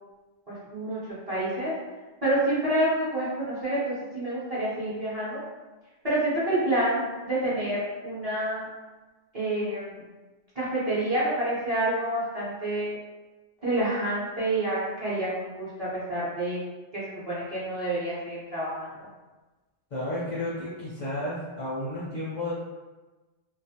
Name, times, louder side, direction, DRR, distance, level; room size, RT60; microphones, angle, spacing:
voice 1, 0.5-1.0 1.3-1.7 2.2-5.4 6.0-8.7 9.3-10.0 10.5-13.0 13.6-16.6 16.9-19.1, right 1 dB, 35° right, -10 dB, 0.7 m, -28 dB
voice 2, 19.9-22.5, left 1 dB, 50° left, -8 dB, 0.5 m, -32 dB
2.3 x 2.0 x 2.8 m, 1.2 s
omnidirectional pair, 1.2 m